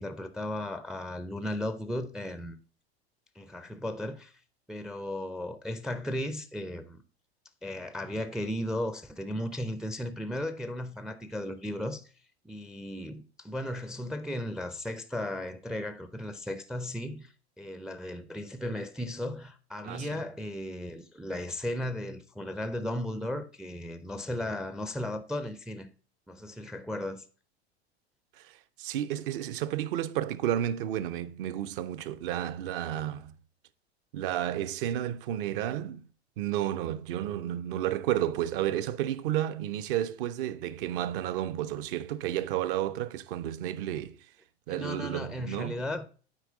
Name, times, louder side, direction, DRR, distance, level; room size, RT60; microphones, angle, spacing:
voice 1, 0.0-2.6 3.4-4.3 4.7-7.0 7.6-12.1 12.4-25.9 26.3-27.2 44.7-46.1, left 1 dB, ahead, 0.4 m, -35 dB
voice 2, 19.8-20.2 28.4-33.4 34.1-36.1 36.4-44.2 44.7-45.8, right 12 dB, 55° right, 0.6 m, -32 dB
8.5 x 4.7 x 3.8 m
figure-of-eight pair, 85°, 33 cm